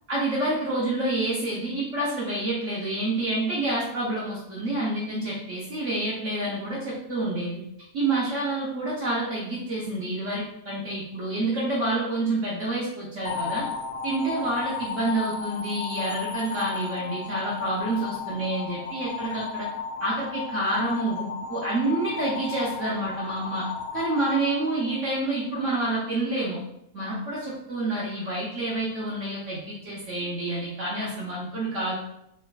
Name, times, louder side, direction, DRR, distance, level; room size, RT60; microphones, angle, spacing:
voice 1, 0.1-7.6 7.9-13.7 14.0-19.7 20.0-23.7 23.9-26.6 26.9-31.9, right 2 dB, 55° right, -6 dB, 1.0 m, -28 dB
sound 1, 13.2-25.4, left 5 dB, 60° left, 0.7 m, -34 dB
4.3 x 3.4 x 2.3 m, 0.81 s
omnidirectional pair, 1.7 m